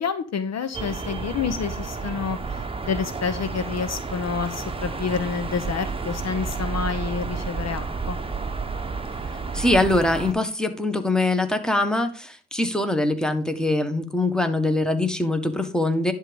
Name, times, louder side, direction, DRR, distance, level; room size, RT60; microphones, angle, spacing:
voice 1, 0.0-8.2, left 6 dB, 55° left, 11 dB, 0.9 m, -28 dB
sound 1, 0.7-10.3, right 4 dB, 15° right, 1.1 m, -31 dB
voice 2, 9.5-16.1, left 2 dB, ahead, 8 dB, 1.4 m, -23 dB
11.0 x 3.7 x 5.3 m, 0.40 s
supercardioid pair, 55°, 33 cm